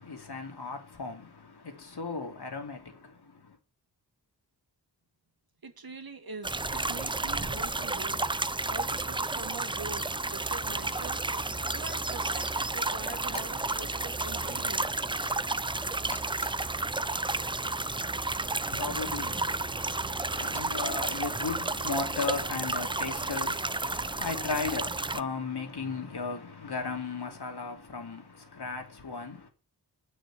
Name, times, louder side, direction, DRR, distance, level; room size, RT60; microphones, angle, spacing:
voice 1, 0.0-3.6 17.6-29.5, left 4 dB, 70° left, 3.0 m, -36 dB
voice 2, 5.6-11.3 11.7-15.1, right 3 dB, 60° right, 2.0 m, -44 dB
sound 1, 6.4-25.2, right 2 dB, 10° right, 0.4 m, -32 dB
sound 2, 10.7-11.2 13.1-13.7 14.3-14.6 15.9-16.7 18.8-19.1 20.4-20.8 22.5-22.9, left 2 dB, 15° left, 1.7 m, -46 dB
9.2 x 6.3 x 7.6 m
wide cardioid pair, 80°, 41 cm